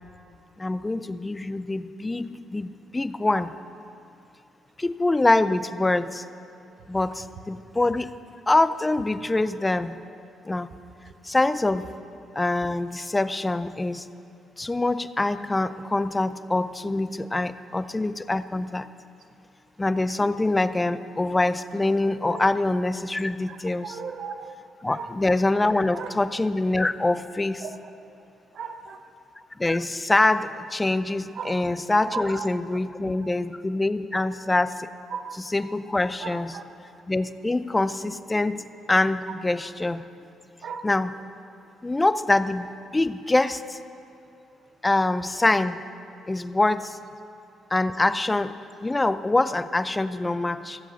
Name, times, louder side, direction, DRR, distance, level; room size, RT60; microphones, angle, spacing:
voice 1, 0.6-3.5 4.8-6.2 6.9-8.1 8.5-10.0 10.4-10.7 11.2-11.9 12.4-14.1 14.6-18.9 19.8-24.0 24.8-27.7 29.6-34.9 35.3-36.6 37.1-40.0 40.8-41.1 41.8-43.8 44.8-45.8 46.3-47.0 47.7-50.8, left 2 dB, 15° left, 13 dB, 0.4 m, -24 dB
voice 2, 23.8-24.5 24.9-25.1 25.9-26.1 27.6-27.7 28.5-29.0 31.3-31.6 32.1-32.5 34.1-34.2 35.1-35.4 36.2-36.6 39.3-39.4 40.6-40.8, right 6 dB, 65° right, 7 dB, 0.8 m, -36 dB
15.0 x 7.6 x 7.0 m, 2.7 s
cardioid pair, 105°, 0 cm